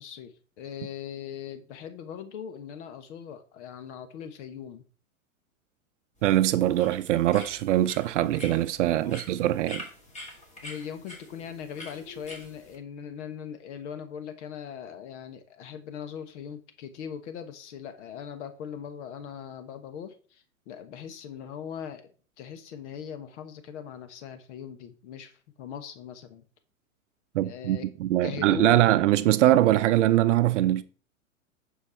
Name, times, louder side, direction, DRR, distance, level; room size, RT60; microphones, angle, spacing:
voice 1, 0.0-4.8 9.0-9.2 10.6-22.1 22.4-26.4 27.4-27.9 28.2-29.0, left 8 dB, 55° left, 1.3 m, -40 dB
sound 1, 6.2-12.8, left 1 dB, 15° left, 3.0 m, -45 dB
voice 2, 6.2-9.8 27.3-30.8, right 14 dB, 55° right, 0.6 m, -22 dB
12.0 x 4.7 x 4.4 m
hypercardioid pair, 115°, 42 cm